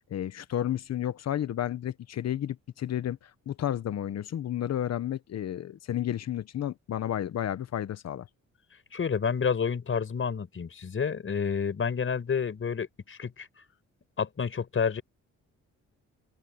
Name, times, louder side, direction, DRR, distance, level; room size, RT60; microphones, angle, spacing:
voice 1, 0.1-8.3, left 11 dB, 60° left, 1.2 m, -32 dB
voice 2, 8.9-13.5 14.2-15.0, left 6 dB, 45° left, 5.4 m, -29 dB
open air
cardioid pair, 90°, 30 cm